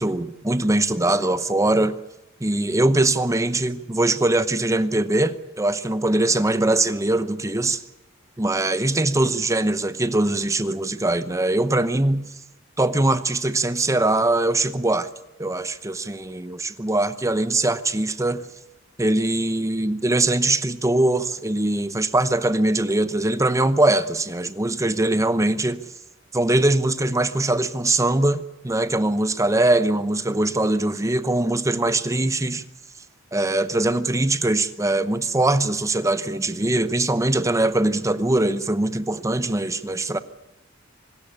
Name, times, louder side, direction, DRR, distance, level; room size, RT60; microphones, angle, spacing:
voice 1, 0.0-1.9 2.4-7.8 8.4-12.3 12.8-15.1 15.4-18.5 19.0-25.9 26.3-28.4 28.6-32.6 33.3-40.2, right 2 dB, 15° right, 0.9 m, -22 dB
25.0 x 13.5 x 10.0 m
head